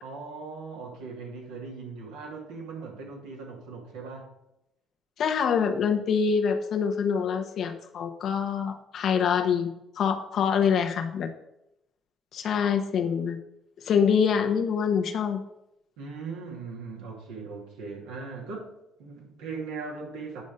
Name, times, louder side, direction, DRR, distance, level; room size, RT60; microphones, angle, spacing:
voice 1, 0.0-4.3 16.0-18.7 19.0-20.4, right 4 dB, 80° right, -1 dB, 2.3 m, -39 dB
voice 2, 5.2-11.3 12.3-13.4 13.8-15.4, left 7 dB, 60° left, 6 dB, 1.1 m, -25 dB
9.4 x 5.3 x 5.0 m, 0.85 s
hypercardioid pair, 50°, 0 cm